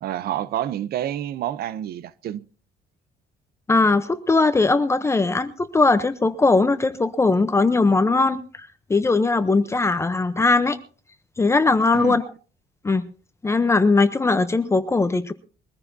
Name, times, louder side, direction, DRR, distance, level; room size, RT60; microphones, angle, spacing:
voice 1, 0.0-2.5 11.9-12.2, right 11 dB, 65° right, 0.7 m, -28 dB
voice 2, 3.7-10.8 11.4-12.2 12.8-13.1 13.4-15.3, left 3 dB, 15° left, 0.7 m, -20 dB
22.5 x 14.5 x 2.7 m
cardioid pair, 160°, 17 cm